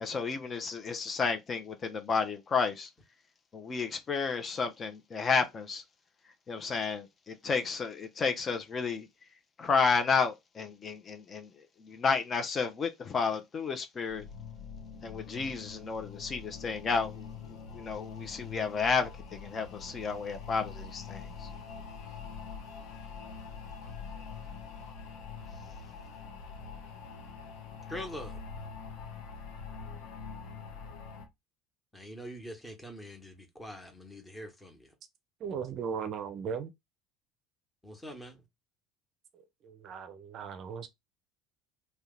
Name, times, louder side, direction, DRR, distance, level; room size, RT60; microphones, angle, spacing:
voice 1, 0.0-2.9 3.5-5.8 6.5-9.1 9.6-11.5 11.8-14.2 15.0-17.3 17.7-21.5, left 5 dB, 35° left, 0.5 m, -31 dB
sound 1, 14.1-31.3, left 5 dB, 65° left, 0.8 m, -44 dB
voice 2, 27.9-28.4 31.9-34.9 37.8-38.4, equal, 10° left, 1.0 m, -44 dB
voice 3, 35.4-36.7 39.6-40.9, right 6 dB, 45° right, 0.4 m, -37 dB
2.8 x 2.1 x 3.7 m
figure-of-eight pair, 65°, 0 cm